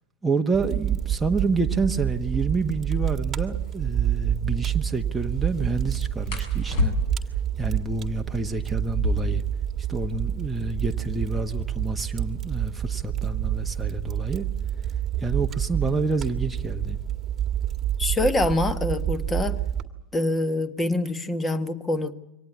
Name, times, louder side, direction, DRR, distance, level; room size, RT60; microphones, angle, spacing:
voice 1, 0.2-7.0 7.6-9.4 9.9-14.5 15.2-17.0, right 3 dB, 5° right, 3 dB, 1.3 m, -28 dB
Fire, 0.5-19.8, right 11 dB, 25° right, 1.8 m, -28 dB
sound 1, 3.6-3.8 6.2-7.4 8.8-10.5 10.8-10.9 11.1-11.7 12.3-14.8 15.9-16.2 16.6-17.0 17.4-18.1, left 4 dB, 50° left, 7.7 m, -31 dB
voice 2, 18.0-19.5 20.1-22.1, left 2 dB, 15° left, 12 dB, 1.5 m, -25 dB
24.0 x 18.5 x 8.5 m, 0.93 s
figure-of-eight pair, 90°, 0 cm